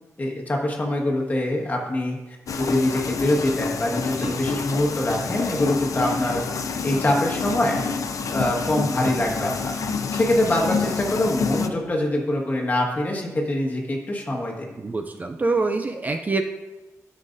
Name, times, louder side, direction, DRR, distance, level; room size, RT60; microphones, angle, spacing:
voice 1, 0.2-6.4 6.8-7.8 8.3-9.7 10.1-14.7, left 1 dB, 30° left, -1 dB, 1.6 m, -24 dB
sound 1, 2.5-11.7, left 5 dB, 70° left, 0.5 m, -28 dB
voice 2, 14.8-16.4, right 3 dB, 30° right, 6 dB, 0.4 m, -25 dB
13.0 x 6.5 x 2.6 m, 1.2 s
wide cardioid pair, 145°, 6 cm